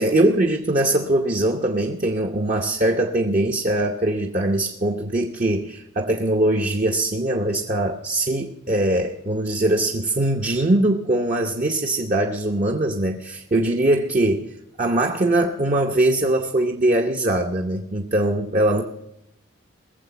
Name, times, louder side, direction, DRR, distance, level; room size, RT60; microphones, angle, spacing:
voice 1, 0.0-14.5 14.8-18.8, right 1 dB, 35° right, 2 dB, 0.8 m, -21 dB
20.0 x 7.6 x 5.8 m, 0.82 s
head